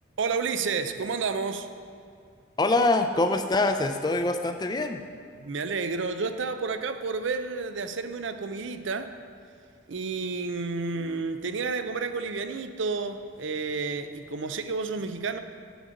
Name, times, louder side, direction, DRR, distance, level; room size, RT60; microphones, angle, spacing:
voice 1, 0.2-1.7 5.4-9.2 9.9-15.4, right 4 dB, 75° right, 9 dB, 0.5 m, -30 dB
voice 2, 2.6-5.0, left 2 dB, 20° left, 7 dB, 0.4 m, -24 dB
8.1 x 5.1 x 7.6 m, 2.3 s
head